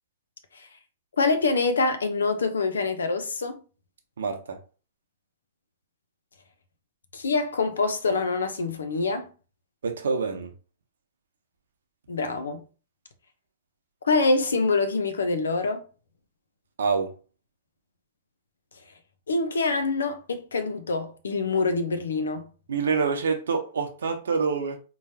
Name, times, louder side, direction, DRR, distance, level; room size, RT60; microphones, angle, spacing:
voice 1, 1.2-3.6 7.1-9.3 12.1-12.6 14.0-15.8 19.3-22.5, left 3 dB, 80° left, 0.6 m, -25 dB
voice 2, 4.2-4.6 9.8-10.5 16.8-17.1 22.7-24.8, right 5 dB, 75° right, 0.8 m, -26 dB
3.8 x 3.0 x 2.8 m
hypercardioid pair, 105°, 0 cm